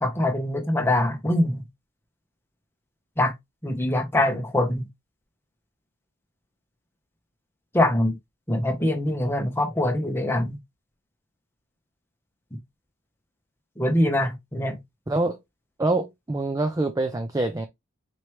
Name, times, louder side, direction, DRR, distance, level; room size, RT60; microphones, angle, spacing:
voice 1, 0.0-1.6 3.2-3.3 3.6-4.8 7.7-8.2 8.5-10.6 13.8-14.8, left 1 dB, 10° left, 0.9 m, -23 dB
voice 2, 15.1-15.4 15.8-17.7, right 2 dB, 15° right, 0.4 m, -25 dB
4.5 x 3.1 x 3.1 m
head